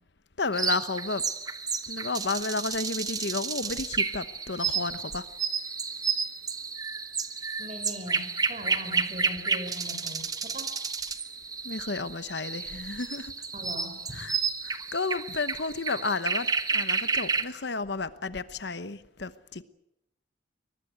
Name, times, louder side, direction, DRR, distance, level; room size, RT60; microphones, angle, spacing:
voice 1, 0.4-1.2 1.9-5.2 11.6-13.3 14.2-14.3 14.6-19.6, left 3 dB, 65° left, 13 dB, 1.1 m, -32 dB
sound 1, 0.5-17.4, right 5 dB, 20° right, 1.2 m, -31 dB
voice 2, 7.6-10.3 10.5-10.7 13.5-14.2, left 1 dB, 35° right, 6 dB, 6.7 m, -40 dB
23.0 x 20.0 x 9.5 m, 0.80 s
head